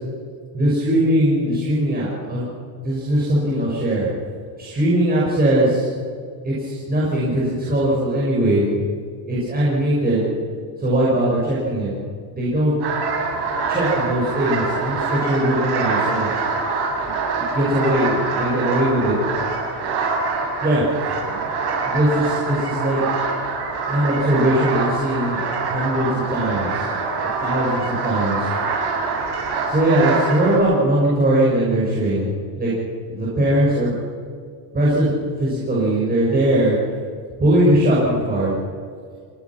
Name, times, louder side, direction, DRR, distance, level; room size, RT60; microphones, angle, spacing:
voice 1, 0.5-2.5 2.8-4.1 4.6-5.9 6.4-8.6 9.3-10.3 10.8-11.9 12.3-12.7 13.7-16.3 17.0-19.1 20.6-21.4 21.8-23.0 23.9-26.9 27.4-28.5 29.7-32.7 33.1-33.9 34.7-35.1 35.4-36.8 37.4-38.5, right 1 dB, 20° right, -7 dB, 6.1 m, -20 dB
sound 1, 12.8-30.6, right 4 dB, 50° right, 7.3 m, -25 dB
29.5 x 18.0 x 6.1 m, 2.1 s
cardioid pair, 160°, 49 cm